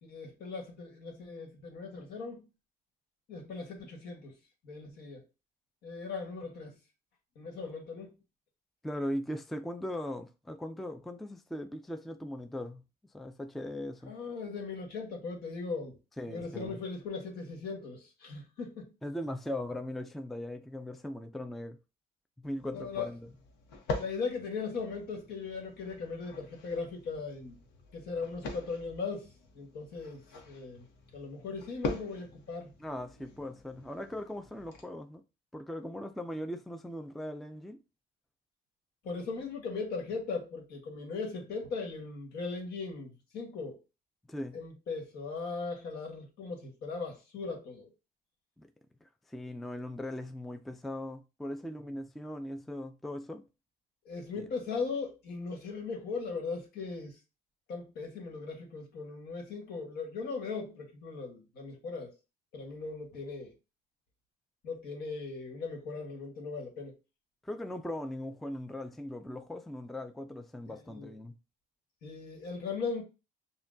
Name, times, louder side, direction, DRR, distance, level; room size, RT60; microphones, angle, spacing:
voice 1, 0.0-2.4 3.3-4.3 4.6-5.2 5.8-6.7 7.3-8.1 14.1-16.0 16.3-18.9 22.7-23.1 24.0-27.6 27.9-30.9 31.1-32.7 39.0-43.8 44.5-47.9 54.0-57.2 57.7-62.1 62.5-63.5 64.6-66.9 70.7-71.1 72.0-73.0, left 4 dB, 70° left, 1.4 m, -38 dB
voice 2, 8.8-12.8 13.1-14.1 16.2-16.8 19.0-21.8 22.4-23.3 32.8-35.2 35.5-37.8 44.3-44.6 48.6-48.7 49.3-53.4 54.4-54.5 67.4-71.4, left 1 dB, ahead, 0.3 m, -39 dB
sound 1, 22.4-34.8, left 3 dB, 85° left, 0.9 m, -44 dB
5.8 x 2.2 x 2.6 m
cardioid pair, 110°, 17 cm